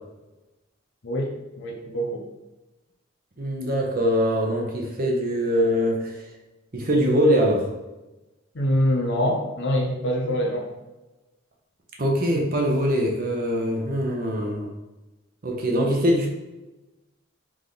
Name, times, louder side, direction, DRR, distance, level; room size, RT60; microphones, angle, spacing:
voice 1, 1.0-2.2 8.5-10.7, equal, 60° left, 1 dB, 0.8 m, -25 dB
voice 2, 3.4-6.2 6.7-7.7 12.0-14.7 15.4-16.3, equal, 45° right, 0 dB, 0.8 m, -23 dB
3.6 x 3.2 x 3.9 m, 1.1 s
head